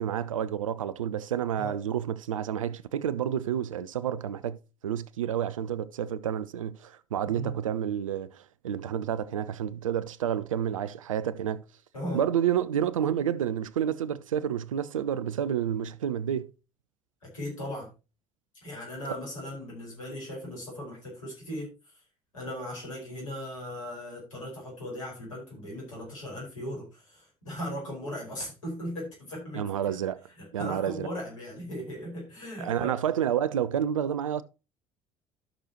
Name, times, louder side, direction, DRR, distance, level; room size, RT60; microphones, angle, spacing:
voice 1, 0.0-4.6 4.8-11.6 12.1-16.5 29.5-30.2 30.5-31.1 32.6-34.4, right 9 dB, 80° right, 0.5 m, -29 dB
voice 2, 17.2-17.9 18.6-21.7 22.3-29.6 30.4-33.0, left 1 dB, 80° left, 5.1 m, -38 dB
13.5 x 6.4 x 3.0 m
figure-of-eight pair, 55°, 17 cm